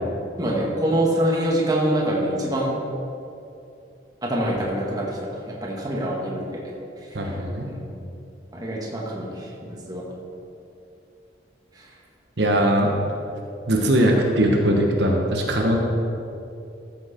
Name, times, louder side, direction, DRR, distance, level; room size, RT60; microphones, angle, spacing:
voice 1, 0.4-2.8 4.2-6.6 7.1-7.3 7.6-7.8 8.5-9.5 9.9-10.0 11.8-11.9, right 1 dB, 20° right, -4 dB, 1.8 m, -25 dB
voice 2, 7.1-7.7 12.4-12.9 13.7-15.8, right 1 dB, 70° right, 0 dB, 1.2 m, -20 dB
13.5 x 7.5 x 4.4 m, 2.7 s
head